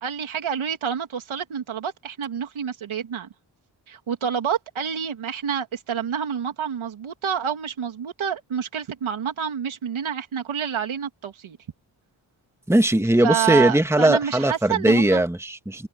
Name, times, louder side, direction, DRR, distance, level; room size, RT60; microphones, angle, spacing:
voice 1, 0.0-3.3 3.9-11.6 13.2-15.2, right 8 dB, 90° right, 2.8 m, -28 dB
voice 2, 12.7-15.9, right 1 dB, 5° right, 1.7 m, -19 dB
open air
cardioid pair, 45°, 47 cm